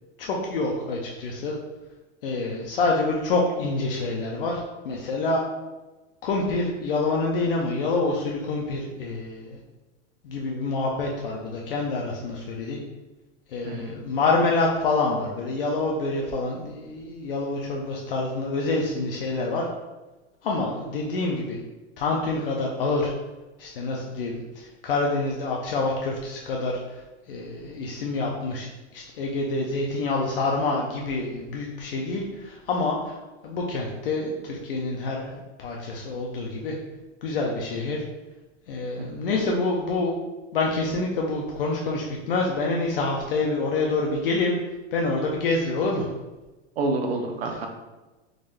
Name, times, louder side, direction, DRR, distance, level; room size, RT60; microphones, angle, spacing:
voice 1, 0.2-1.6 2.2-5.4 6.2-9.6 10.2-12.8 13.5-19.7 20.4-21.6 22.0-23.1 23.6-26.8 27.3-28.7 28.9-33.1 33.4-36.8 37.2-38.0 38.7-40.1 40.5-44.5 44.9-46.1, left 3 dB, 50° left, -1 dB, 0.5 m, -27 dB
voice 2, 46.8-47.7, right 2 dB, 60° right, 4 dB, 0.7 m, -28 dB
3.7 x 2.6 x 3.3 m, 1.1 s
supercardioid pair, 175°, 35 cm